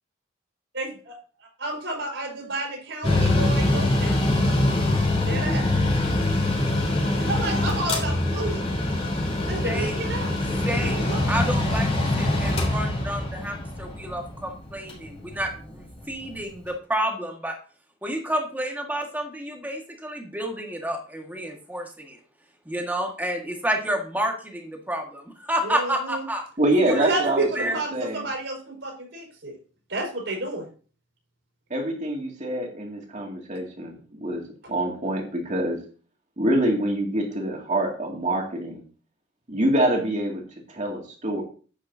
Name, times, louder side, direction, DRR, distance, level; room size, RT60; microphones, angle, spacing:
voice 1, 1.6-4.2 5.2-5.7 7.2-8.7 9.5-10.3 10.8-11.3 25.6-26.2 26.8-29.6 29.9-30.7 34.6-34.7, right 2 dB, 75° right, 1 dB, 4.5 m, -30 dB
Mechanical fan, 3.0-16.4, left 2 dB, 30° left, 3.2 m, -24 dB
voice 2, 9.6-10.1 10.7-15.5 16.1-17.6 18.0-22.2 22.7-26.4 26.9-27.1 27.6-27.8, right 1 dB, 10° right, 2 dB, 1.7 m, -30 dB
voice 3, 26.6-28.2 31.7-35.8 36.4-38.8 39.5-40.4 40.7-41.4, right 1 dB, 40° right, 1 dB, 2.4 m, -25 dB
10.5 x 8.6 x 2.8 m, 0.39 s
head